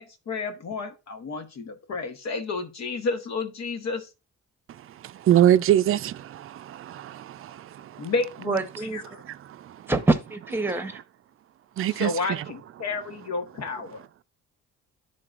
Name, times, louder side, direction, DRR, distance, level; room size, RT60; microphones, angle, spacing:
voice 1, 0.0-4.1 8.0-8.7 8.9-9.2 11.9-14.2, left 4 dB, 60° left, 1.2 m, -31 dB
voice 2, 5.0-8.1 9.2-9.9 11.8-12.4, right 11 dB, 45° right, 0.4 m, -24 dB
voice 3, 8.5-9.0 9.9-11.0, right 2 dB, 5° right, 1.0 m, -25 dB
11.0 x 3.8 x 2.4 m
cardioid pair, 90°, 30 cm